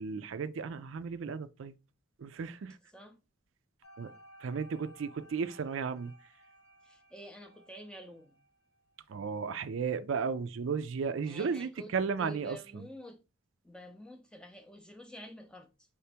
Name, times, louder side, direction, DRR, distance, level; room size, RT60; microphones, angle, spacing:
voice 1, 0.0-1.7 2.2-2.8 4.0-4.1 4.4-6.1 9.1-12.8, right 5 dB, 65° right, 0.4 m, -34 dB
sound 1, 3.8-8.9, right 1 dB, 90° left, 1.7 m, -58 dB
voice 2, 6.8-8.4 11.2-11.9 12.2-13.2 13.6-15.7, equal, 5° left, 0.5 m, -49 dB
5.0 x 2.8 x 3.3 m
head